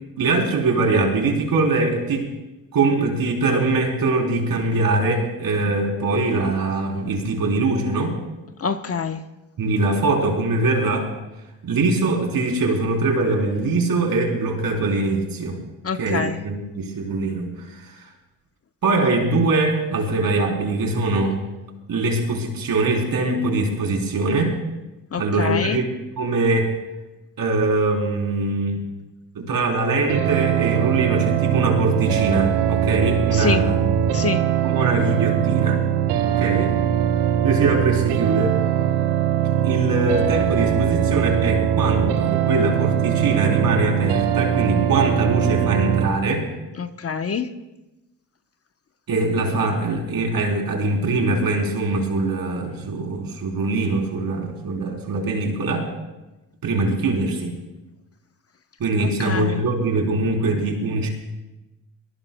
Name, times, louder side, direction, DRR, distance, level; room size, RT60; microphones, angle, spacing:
voice 1, 0.2-2.3 2.7-8.2 9.6-11.1 11.6-15.6 15.9-18.0 18.8-21.4 21.9-24.5 25.2-25.8 26.2-26.7 27.4-28.8 29.3-33.9 34.6-35.8 36.2-36.7 37.4-38.6 39.4-46.5 49.1-55.9 56.6-57.5 58.8-61.1, right 2 dB, 55° right, 1 dB, 3.9 m, -22 dB
voice 2, 8.6-9.2 15.8-16.4 25.1-25.8 33.3-33.7 34.1-34.5 46.8-47.5 59.0-59.6, left 5 dB, 35° left, 9 dB, 1.0 m, -26 dB
sound 1, 30.1-46.1, right 10 dB, 80° right, 1.2 m, -21 dB
24.0 x 19.0 x 2.3 m, 1.0 s
hypercardioid pair, 55°, 41 cm